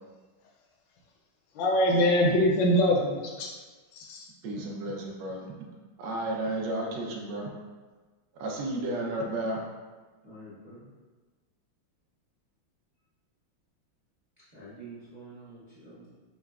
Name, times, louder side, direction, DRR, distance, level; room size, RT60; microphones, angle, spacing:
voice 1, 1.5-3.5 3.9-4.3, equal, 70° left, 0 dB, 1.2 m, -23 dB
voice 2, 4.4-5.5 6.0-7.5 8.4-9.6, right 1 dB, 70° right, -2 dB, 1.0 m, -32 dB
voice 3, 10.2-10.9 14.5-16.1, right 2 dB, 50° right, -11 dB, 0.4 m, -47 dB
5.6 x 2.1 x 2.3 m, 1.3 s
omnidirectional pair, 2.3 m